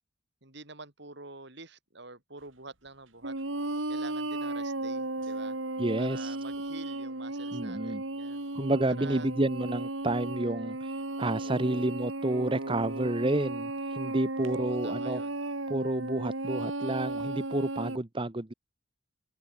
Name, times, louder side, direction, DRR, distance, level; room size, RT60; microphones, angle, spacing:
voice 1, 0.4-3.4 3.9-5.6 6.0-8.4 8.8-9.3 11.4-11.9 14.5-15.3, right 3 dB, 60° right, 5.1 m, -47 dB
sound 1, 3.2-18.0, right 2 dB, 80° right, 3.0 m, -35 dB
voice 2, 5.8-6.4 7.5-8.0 8.5-15.2 15.7-18.5, right 1 dB, 25° right, 1.0 m, -30 dB
open air
head